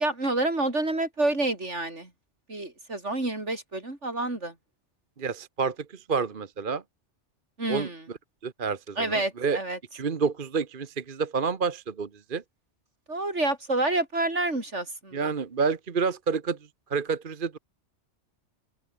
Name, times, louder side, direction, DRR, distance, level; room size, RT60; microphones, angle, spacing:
voice 1, 0.0-2.1 2.5-4.5 7.6-8.0 9.0-9.8 13.1-15.3, right 2 dB, 75° right, 5.5 m, -28 dB
voice 2, 5.2-6.8 7.7-8.2 8.4-9.6 9.9-12.4 15.1-16.6 16.9-17.6, right 5 dB, 50° right, 1.3 m, -29 dB
open air
omnidirectional pair, 1.2 m